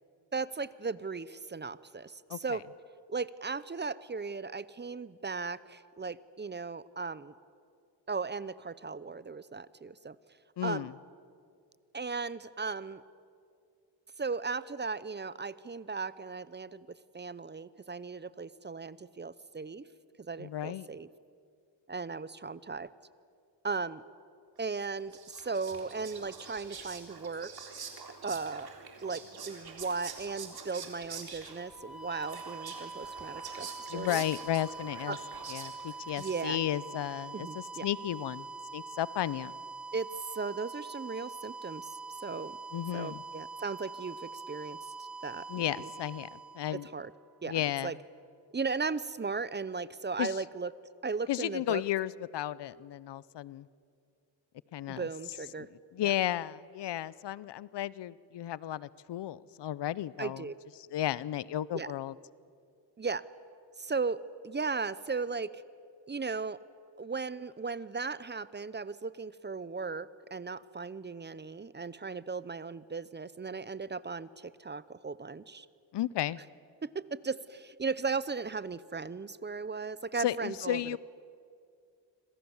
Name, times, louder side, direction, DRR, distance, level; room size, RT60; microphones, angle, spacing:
voice 1, 0.3-2.6 3.1-7.3 8.1-10.2 10.6-10.9 11.9-13.0 14.2-19.8 20.3-21.1 21.9-22.9 23.6-24.0 24.6-27.5 28.2-28.7 29.0-34.2 35.1-35.2 36.2-36.6 37.3-37.9 39.9-41.9 42.2-42.6 42.9-45.9 46.7-47.1 47.4-48.0 48.5-50.7 51.0-51.8 54.9-55.7 56.0-56.1 60.2-60.5 61.7-61.9 63.0-63.3 63.8-65.6 66.1-66.6 67.0-75.7 76.8-81.0, right 4 dB, 25° right, 18 dB, 0.7 m, -37 dB
voice 2, 10.6-10.9 20.4-20.9 33.9-35.2 35.5-38.5 38.7-39.5 42.7-43.2 45.5-46.9 47.5-47.9 50.2-50.3 51.3-53.7 54.7-55.1 55.6-55.7 55.9-60.5 60.8-62.1 75.9-76.4 80.2-81.0, left 12 dB, 65° left, 20 dB, 0.7 m, -34 dB
Whispering, 24.8-36.8, right 5 dB, 55° right, 3.8 m, -46 dB
sound 1, 31.6-47.4, right 4 dB, ahead, 1.0 m, -44 dB
26.0 x 26.0 x 7.2 m, 2.4 s
cardioid pair, 80°, 45 cm